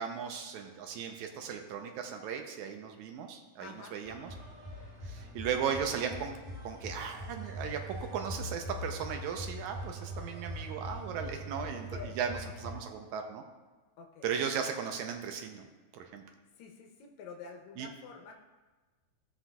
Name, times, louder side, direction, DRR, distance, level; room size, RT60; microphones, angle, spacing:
voice 1, 0.0-4.3 5.0-6.3 6.6-13.4 14.2-15.7 15.9-16.2 17.8-17.9, right 7 dB, 80° right, 4 dB, 1.9 m, -37 dB
voice 2, 3.6-4.0 11.7-12.2 12.6-12.8 14.0-14.4 16.6-18.4, left 5 dB, 75° left, 3 dB, 1.8 m, -48 dB
sound 1, 4.0-12.8, equal, 45° right, 1.8 m, -42 dB
15.0 x 5.8 x 2.3 m, 1.3 s
omnidirectional pair, 3.6 m